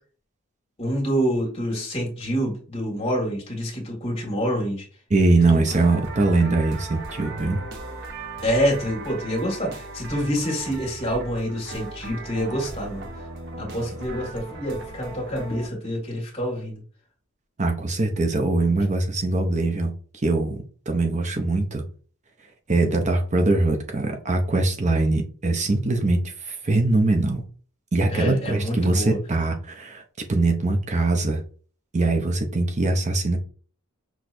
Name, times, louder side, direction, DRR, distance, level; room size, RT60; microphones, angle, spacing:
voice 1, 0.8-4.9 5.4-5.7 8.4-13.1 13.6-16.8 28.1-29.2, equal, 30° left, -1 dB, 1.9 m, -27 dB
voice 2, 5.1-7.6 17.6-19.9 20.2-21.8 22.7-27.4 27.9-30.0 30.3-31.4 31.9-33.4, right 2 dB, 35° right, 3 dB, 0.6 m, -22 dB
sound 1, 5.7-15.7, right 3 dB, 60° right, 1.0 m, -37 dB
6.1 x 3.1 x 2.6 m, 0.41 s
head